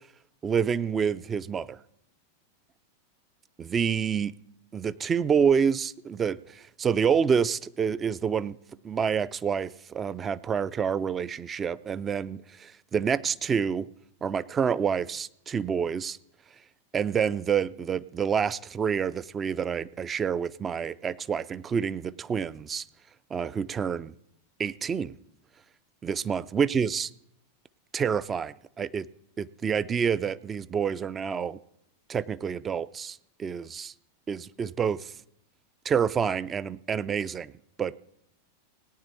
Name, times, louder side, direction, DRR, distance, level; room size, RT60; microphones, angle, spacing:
voice 1, 0.4-1.8 3.6-4.3 4.7-8.6 8.8-13.9 14.2-16.2 16.9-22.9 23.3-24.1 24.6-25.1 26.0-27.1 27.9-29.1 29.4-31.6 32.1-33.9 34.3-35.1 35.8-37.5 37.8-37.9, right 7 dB, 20° right, 18 dB, 0.4 m, -28 dB
18.0 x 9.4 x 4.2 m, 0.77 s
figure-of-eight pair, 90°, 0 cm